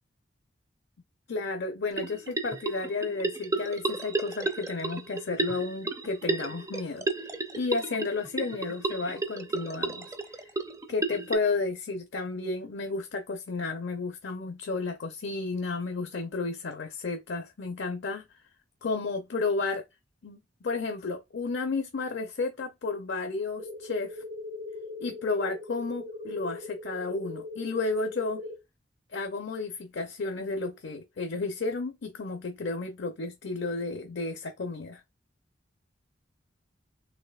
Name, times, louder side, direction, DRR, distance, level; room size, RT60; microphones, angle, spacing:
voice 1, 1.3-10.4 10.9-18.2 18.8-19.8 20.2-24.2 25.0-28.4 29.1-35.0, left 3 dB, 70° left, 0.5 m, -32 dB
sound 1, 1.9-11.3, right 3 dB, 15° right, 0.4 m, -33 dB
sound 2, 23.6-28.6, left 2 dB, 50° right, 0.8 m, -40 dB
4.2 x 2.8 x 2.3 m
head